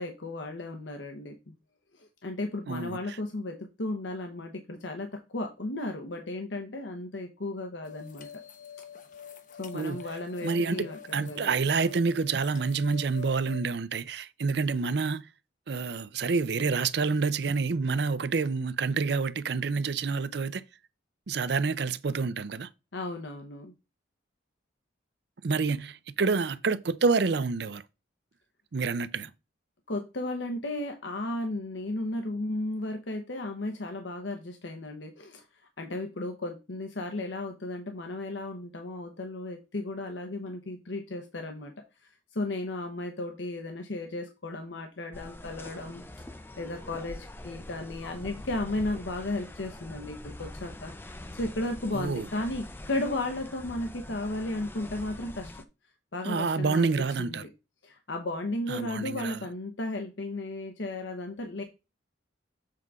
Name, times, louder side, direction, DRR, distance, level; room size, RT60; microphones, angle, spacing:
voice 1, 0.0-1.5 1.9-8.4 9.6-11.6 16.6-16.7 22.9-23.7 29.9-35.4 35.8-41.7 42.3-46.0 46.6-55.5 56.1-56.9 57.2-57.5 57.8-61.6, left 2 dB, 70° left, 0.9 m, -35 dB
voice 2, 2.7-3.2 9.7-10.0 10.4-10.9 11.1-15.3 15.7-20.6 21.3-22.7 25.4-27.8 28.7-29.3 51.9-52.3 56.2-57.4 58.7-59.4, right 4 dB, 55° right, 0.5 m, -28 dB
sound 1, 7.8-13.6, left 8 dB, 40° left, 0.8 m, -46 dB
sound 2, 45.1-55.6, left 1 dB, 10° left, 0.4 m, -44 dB
7.5 x 3.7 x 4.7 m
head